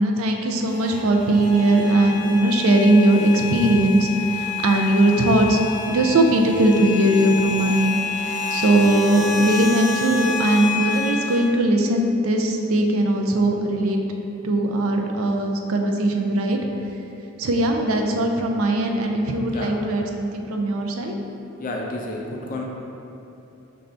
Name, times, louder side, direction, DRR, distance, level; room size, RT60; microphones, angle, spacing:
voice 1, 0.0-5.6 5.9-14.0 14.4-16.6 17.4-21.1, right 1 dB, 80° right, 3 dB, 0.4 m, -19 dB
sound 1, 0.6-11.5, left 6 dB, 35° right, 0.7 m, -29 dB
voice 2, 21.6-22.6, left 2 dB, 40° left, -1 dB, 0.5 m, -30 dB
5.3 x 2.6 x 3.3 m, 3.0 s
head